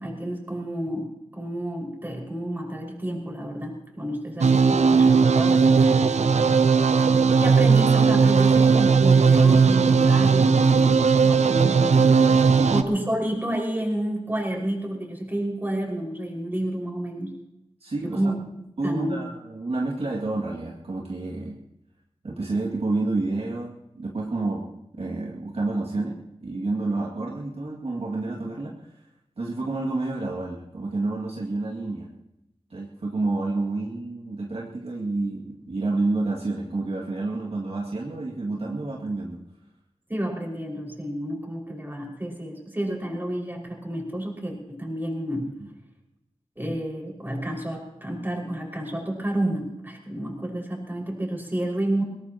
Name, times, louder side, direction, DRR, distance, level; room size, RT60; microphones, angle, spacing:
voice 1, 0.0-6.2 7.4-10.8 11.2-12.1 12.7-17.4 18.0-19.2 40.1-45.5 46.6-52.0, right 1 dB, 15° right, -1 dB, 5.4 m, -30 dB
sound 1, 4.4-12.8, right 5 dB, 80° right, 0.7 m, -18 dB
voice 2, 17.8-18.3 18.8-21.6 22.2-24.7 25.0-28.8 29.4-32.1 32.7-39.4, right 2 dB, 60° right, -2 dB, 2.3 m, -29 dB
22.5 x 18.0 x 3.0 m, 0.85 s
wide cardioid pair, 65°, 11 cm